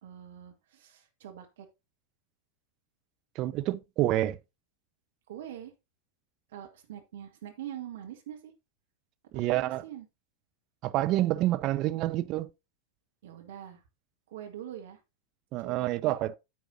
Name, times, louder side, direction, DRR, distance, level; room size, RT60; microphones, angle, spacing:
voice 1, 0.0-1.7 5.3-5.7 6.5-8.5 9.3-10.1 13.2-13.8 14.3-15.0 15.6-16.1, right 11 dB, 55° right, 1.9 m, -44 dB
voice 2, 3.4-4.4 9.3-9.8 10.8-12.5 15.5-16.4, right 15 dB, 40° right, 0.5 m, -28 dB
9.8 x 7.6 x 2.7 m
figure-of-eight pair, 90°, 0 cm